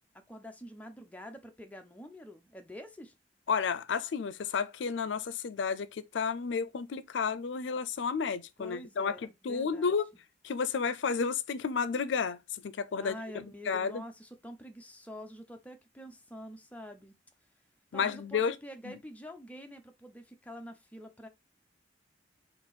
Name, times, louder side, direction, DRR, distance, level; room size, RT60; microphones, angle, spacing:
voice 1, 0.1-3.1 8.6-10.0 12.9-17.2 17.9-21.3, equal, 10° left, 0.8 m, -47 dB
voice 2, 3.5-9.2 9.4-10.1 10.4-14.0 17.9-18.6 18.9-19.0, left 5 dB, 85° left, 0.4 m, -32 dB
4.4 x 2.9 x 4.0 m
head